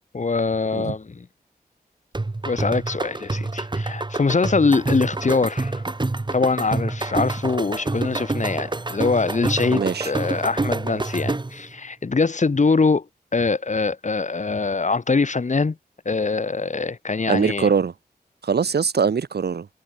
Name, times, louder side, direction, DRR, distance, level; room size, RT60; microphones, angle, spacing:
voice 1, 0.1-1.3 2.4-5.8 6.3-13.0 13.3-15.8 16.0-17.7, left 4 dB, 45° left, 2.7 m, -23 dB
sound 1, 2.1-11.7, right 2 dB, 25° right, 3.0 m, -27 dB
voice 2, 9.7-10.1 17.3-17.9 18.4-19.7, right 6 dB, 80° right, 2.3 m, -22 dB
wide cardioid pair, 95°, 17 cm